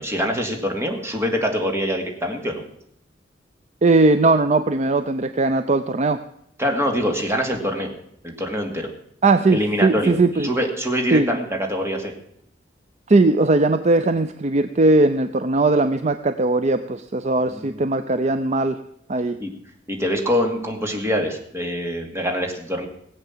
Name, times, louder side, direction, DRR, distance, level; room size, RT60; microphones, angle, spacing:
voice 1, 0.0-2.6 6.6-7.9 8.2-8.9 9.5-12.1 17.5-17.8 19.4-19.5 19.9-22.9, equal, 15° right, 2 dB, 2.4 m, -24 dB
voice 2, 3.8-6.2 9.2-10.5 11.1-11.3 13.1-18.8 19.1-19.4, right 2 dB, 40° right, 10 dB, 0.6 m, -19 dB
18.0 x 8.1 x 7.4 m, 0.72 s
head